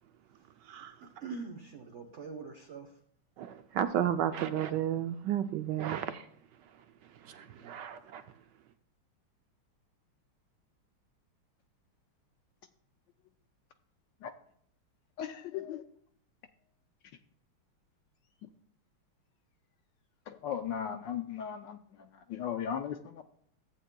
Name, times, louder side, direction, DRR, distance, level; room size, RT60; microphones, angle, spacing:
voice 1, 1.0-2.9 7.2-7.7, right 4 dB, 50° right, 1 dB, 0.9 m, -44 dB
voice 2, 3.4-6.2 7.2-8.2, right 10 dB, 80° right, 10 dB, 1.0 m, -32 dB
voice 3, 15.2-15.8 20.3-21.8 22.3-23.2, left 8 dB, 75° left, 6 dB, 1.1 m, -36 dB
14.5 x 8.4 x 2.2 m, 0.65 s
omnidirectional pair, 2.4 m